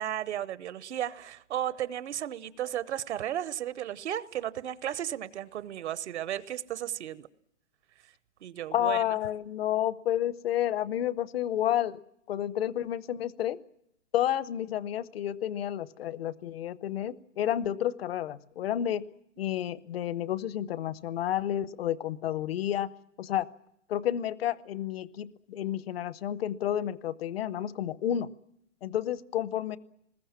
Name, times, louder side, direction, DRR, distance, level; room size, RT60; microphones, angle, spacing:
voice 1, 0.0-7.3 8.4-9.2, right 11 dB, 70° right, 16 dB, 1.0 m, -34 dB
voice 2, 8.7-12.0 12.3-13.6 14.1-19.0 19.4-22.9 23.2-23.5 23.9-28.3 28.8-29.8, left 11 dB, 55° left, 17 dB, 0.9 m, -30 dB
25.0 x 21.0 x 7.3 m, 0.76 s
hypercardioid pair, 165°, 35 cm